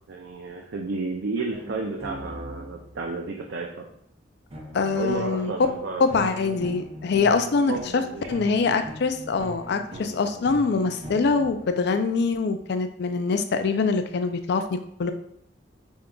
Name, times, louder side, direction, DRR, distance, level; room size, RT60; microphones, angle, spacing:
voice 1, 0.1-3.9 4.9-6.1 7.7-8.2, right 3 dB, 75° right, 1 dB, 0.5 m, -32 dB
sound 1, 1.5-3.1 4.5-12.3, equal, 35° right, 0.6 m, -41 dB
voice 2, 4.7-5.7 6.0-7.7 8.3-14.6 15.0-15.1, left 4 dB, 65° left, 8 dB, 0.4 m, -24 dB
5.2 x 3.6 x 2.3 m, 0.68 s
head